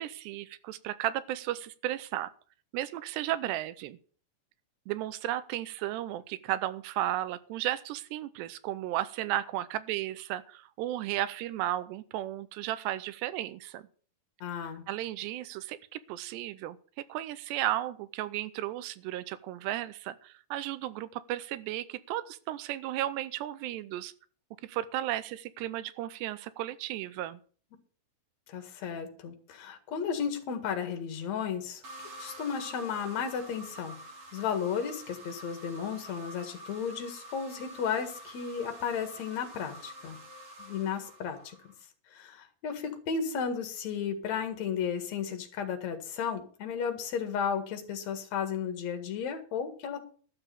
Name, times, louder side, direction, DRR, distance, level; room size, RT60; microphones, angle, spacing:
voice 1, 0.0-2.3 2.7-4.0 4.9-13.8 14.6-16.8 17.1-24.1 24.6-27.4, right 14 dB, 85° right, 16 dB, 2.8 m, -34 dB
voice 2, 14.4-14.8 28.5-34.0 34.3-40.2 40.6-41.6 42.1-50.0, left 7 dB, 50° left, 6 dB, 2.5 m, -34 dB
sound 1, 31.8-41.8, right 1 dB, 40° right, 2.6 m, -47 dB
12.5 x 7.0 x 7.0 m, 0.43 s
omnidirectional pair, 4.8 m